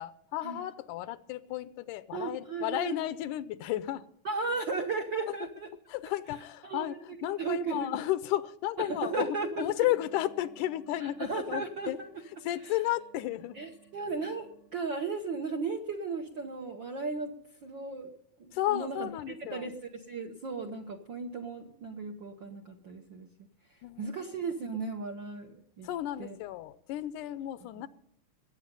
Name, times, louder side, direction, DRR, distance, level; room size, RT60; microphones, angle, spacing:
voice 1, 0.0-4.1 5.3-5.4 5.9-12.0 12.3-13.6 18.5-19.7 23.8-24.2 25.8-27.9, left 14 dB, 80° left, 15 dB, 2.2 m, -33 dB
voice 2, 2.1-3.0 4.2-5.7 6.6-6.9 7.4-7.9 8.9-9.7 11.0-12.1 13.6-17.3 17.6-18.1 18.4-23.3 24.0-25.9 26.2-26.4, right 4 dB, 65° right, 2 dB, 1.2 m, -35 dB
sound 1, 9.9-14.7, right 6 dB, 85° right, 8.2 m, -60 dB
21.0 x 8.8 x 5.4 m, 0.72 s
omnidirectional pair, 3.7 m